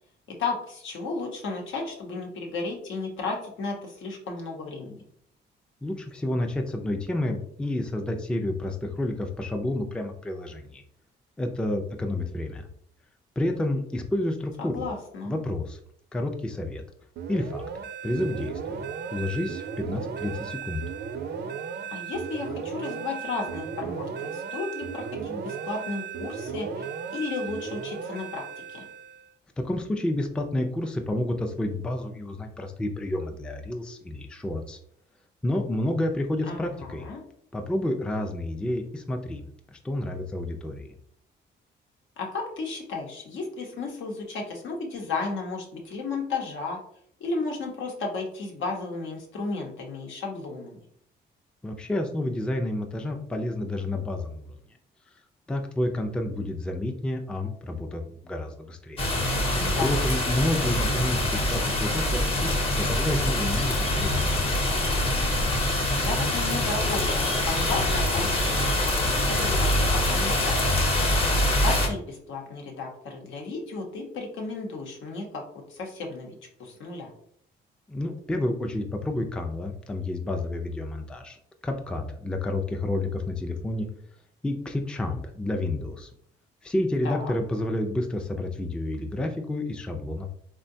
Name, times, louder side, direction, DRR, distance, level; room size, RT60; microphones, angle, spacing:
voice 1, 0.4-5.0 14.6-15.4 21.9-28.8 36.5-37.2 42.2-46.8 47.2-50.8 59.3-60.2 65.9-71.1 71.6-75.4 75.7-76.3 76.6-77.1 87.0-87.3, left 3 dB, 80° left, 1 dB, 0.9 m, -34 dB
voice 2, 5.8-10.8 11.4-12.7 13.4-14.9 15.3-15.8 16.1-16.8 17.3-17.6 18.0-18.8 19.1-20.8 29.6-34.8 35.4-37.1 37.5-40.9 51.6-54.5 55.5-59.1 59.8-64.8 77.9-81.4 81.6-83.9 84.4-86.1 86.6-90.3, left 1 dB, 5° left, 3 dB, 0.4 m, -30 dB
sound 1, 17.2-29.3, right 7 dB, 60° right, 0.4 m, -36 dB
sound 2, 59.0-71.9, left 1 dB, 30° left, 0.8 m, -24 dB
3.6 x 2.2 x 2.6 m, 0.66 s
cardioid pair, 90°, 20 cm